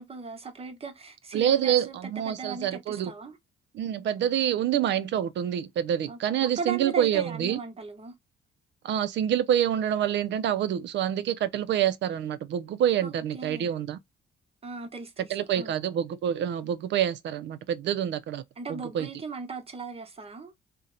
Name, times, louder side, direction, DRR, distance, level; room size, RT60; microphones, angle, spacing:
voice 1, 0.0-3.4 6.1-8.1 13.0-13.7 14.6-15.3 15.5-15.7 18.6-20.5, right 5 dB, 30° right, 0.9 m, -38 dB
voice 2, 1.3-3.1 3.7-7.6 8.8-14.0 15.2-18.4 18.7-19.1, right 10 dB, 65° right, 0.4 m, -27 dB
2.8 x 2.1 x 3.7 m
cardioid pair, 90°, 20 cm